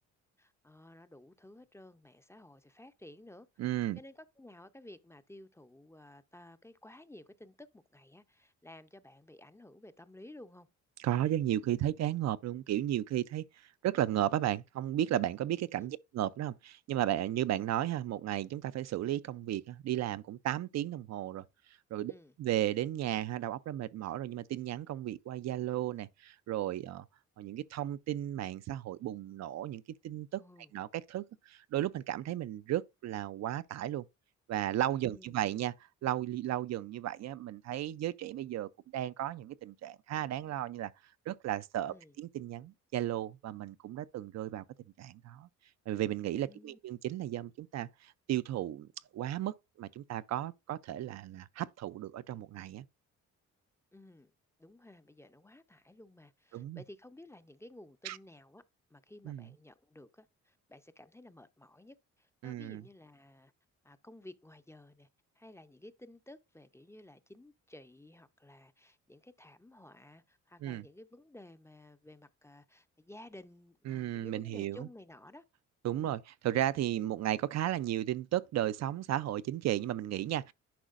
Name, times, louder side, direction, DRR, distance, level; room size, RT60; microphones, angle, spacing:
voice 1, 0.4-3.6 4.0-10.7 15.7-15.9 22.1-22.3 30.4-30.7 35.0-35.4 41.9-42.1 46.5-46.8 53.9-54.3 54.6-58.6 58.9-63.5 63.8-65.1 65.4-75.4 76.0-76.2, left 1 dB, 10° left, 0.6 m, -54 dB
voice 2, 3.6-4.0 11.0-22.1 22.4-27.1 27.4-30.4 30.7-34.0 34.5-35.7 36.0-44.6 45.0-45.5 45.9-52.8 56.5-56.8 58.0-58.2 59.3-59.5 62.4-62.8 70.6-70.9 73.9-74.8 75.8-80.5, right 12 dB, 60° right, 0.5 m, -34 dB
10.5 x 5.0 x 2.5 m
cardioid pair, 90°, 30 cm